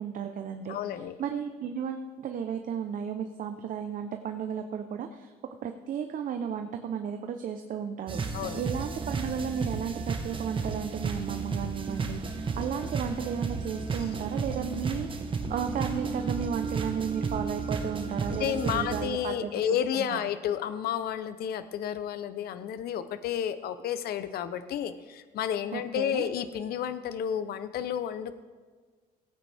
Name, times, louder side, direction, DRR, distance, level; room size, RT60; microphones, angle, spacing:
voice 1, 0.0-5.3 5.6-20.3 25.7-26.3, right 7 dB, 55° right, 6 dB, 0.8 m, -34 dB
voice 2, 0.7-1.1 8.3-8.6 18.3-28.3, left 9 dB, 65° left, 12 dB, 0.8 m, -31 dB
sound 1, 8.1-19.1, right 4 dB, 30° right, 1.2 m, -33 dB
17.0 x 8.9 x 3.5 m, 1.5 s
cardioid pair, 110°, 17 cm